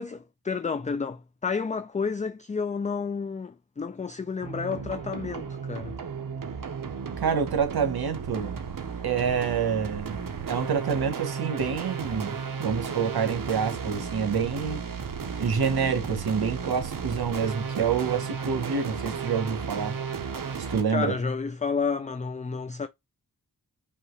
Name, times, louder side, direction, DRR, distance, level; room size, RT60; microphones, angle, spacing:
voice 1, 0.0-6.0 20.9-22.9, left 5 dB, 20° left, 0.4 m, -30 dB
sound 1, 4.4-20.8, right 6 dB, 65° right, 0.8 m, -34 dB
voice 2, 7.2-8.6 9.0-14.8 15.4-19.9 20.7-21.1, right 6 dB, 85° right, 1.1 m, -27 dB
5.5 x 2.4 x 3.1 m
wide cardioid pair, 60°, 36 cm